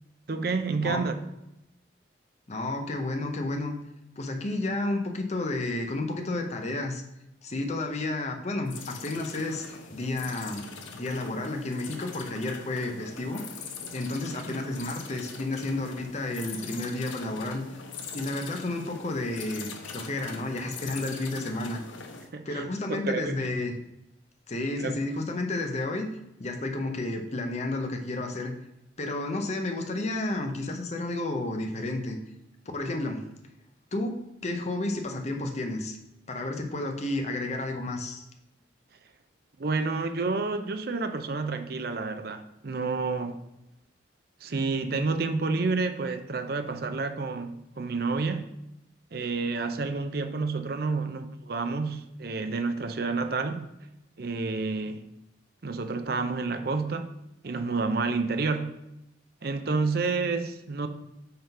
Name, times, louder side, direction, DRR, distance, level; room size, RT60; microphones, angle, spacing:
voice 1, 0.3-1.1 14.3-14.5 22.3-23.4 24.8-25.0 39.6-43.4 44.4-48.4 49.1-53.7 54.2-55.1 55.6-57.1 57.4-58.8 59.4-60.9, right 4 dB, 50° right, 8 dB, 0.5 m, -29 dB
voice 2, 2.5-3.7 4.2-7.0 7.4-10.7 10.9-13.4 13.9-17.7 18.1-21.8 22.4-23.8 24.5-26.1 26.4-28.5 29.0-32.2 32.7-33.2 33.9-36.0 36.3-38.2, left 2 dB, 35° left, 4 dB, 0.8 m, -31 dB
sound 1, 8.7-22.3, left 5 dB, 85° left, 0.8 m, -42 dB
5.7 x 3.7 x 5.6 m, 0.86 s
head